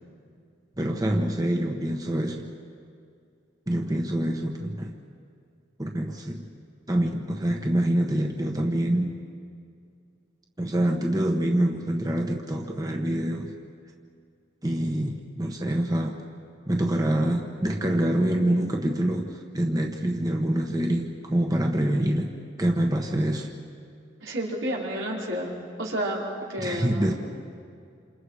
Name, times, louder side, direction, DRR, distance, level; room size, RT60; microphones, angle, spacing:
voice 1, 0.8-2.4 3.7-4.9 5.8-6.4 6.9-9.1 10.6-13.5 14.6-16.2 16.7-22.3 22.6-23.5 26.6-27.1, right 1 dB, 20° right, 2 dB, 1.3 m, -26 dB
voice 2, 24.2-25.5 25.8-26.2 26.5-27.0, right 1 dB, 85° right, -4 dB, 5.1 m, -30 dB
28.5 x 28.0 x 5.0 m, 2.3 s
head